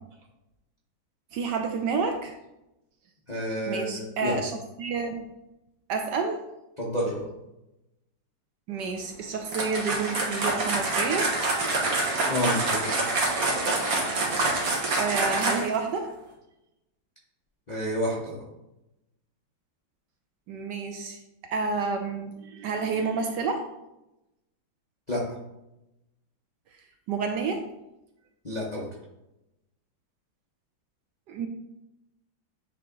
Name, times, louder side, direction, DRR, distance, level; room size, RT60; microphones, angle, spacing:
voice 1, 1.3-2.3 3.7-5.2 5.9-6.4 8.7-11.3 15.0-16.1 20.5-21.2 21.5-23.7 27.1-27.6 31.3-31.5, right 4 dB, 70° right, 5 dB, 1.1 m, -29 dB
voice 2, 3.3-4.4 6.8-7.3 12.3-12.9 17.7-18.4 25.1-25.4 28.4-28.9, equal, 40° left, -4 dB, 0.6 m, -29 dB
sound 1, 9.5-15.8, right 2 dB, 50° right, 1.5 m, -26 dB
8.7 x 3.4 x 3.8 m, 0.92 s
omnidirectional pair, 2.2 m